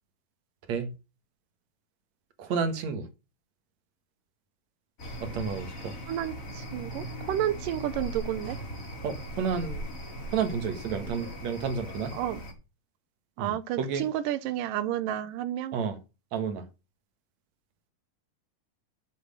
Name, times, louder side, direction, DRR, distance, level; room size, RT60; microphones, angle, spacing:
voice 1, 2.4-3.1 5.2-6.0 9.0-9.8 10.3-12.2 13.4-14.1 15.7-16.0 16.3-16.7, right 6 dB, 60° right, 2.4 m, -31 dB
sound 1, 5.0-12.5, equal, 25° left, 2.6 m, -39 dB
voice 2, 6.1-8.6 12.1-12.4 13.4-15.8, right 12 dB, 80° right, 2.5 m, -31 dB
7.8 x 7.8 x 6.3 m
omnidirectional pair, 3.9 m